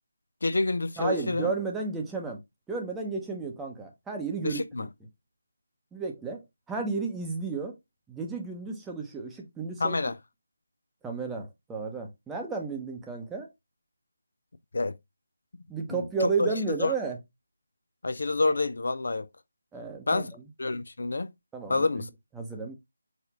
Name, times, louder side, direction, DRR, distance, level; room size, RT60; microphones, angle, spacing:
voice 1, 0.4-1.5 4.4-4.9 9.8-10.2 14.7-14.9 16.2-16.5 16.8-16.9 18.0-19.3 20.1-20.3 20.6-21.3 21.7-22.1, left 3 dB, 65° left, 0.4 m, -27 dB
voice 2, 1.0-2.4 2.7-4.9 5.9-7.8 8.1-10.0 11.0-13.5 15.7-17.2 19.7-20.4 21.5-22.0 22.3-22.7, right 4 dB, 5° right, 0.8 m, -33 dB
4.7 x 2.5 x 3.5 m
figure-of-eight pair, 160°, 0 cm